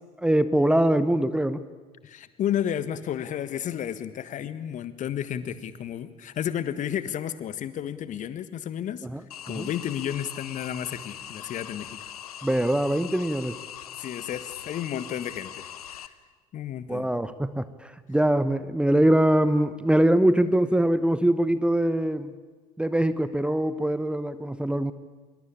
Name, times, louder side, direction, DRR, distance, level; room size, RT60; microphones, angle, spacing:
voice 1, 0.2-1.6 9.0-9.2 9.5-9.7 12.4-13.6 16.9-22.3 22.8-24.9, right 1 dB, 5° right, 14 dB, 1.0 m, -23 dB
voice 2, 2.0-9.1 9.5-12.1 14.0-16.1 16.5-17.1, left 10 dB, 40° left, 14 dB, 1.5 m, -32 dB
sound 1, 9.3-16.1, left 10 dB, 75° left, 1.0 m, -41 dB
24.5 x 22.5 x 8.8 m, 1.3 s
figure-of-eight pair, 65°, 20 cm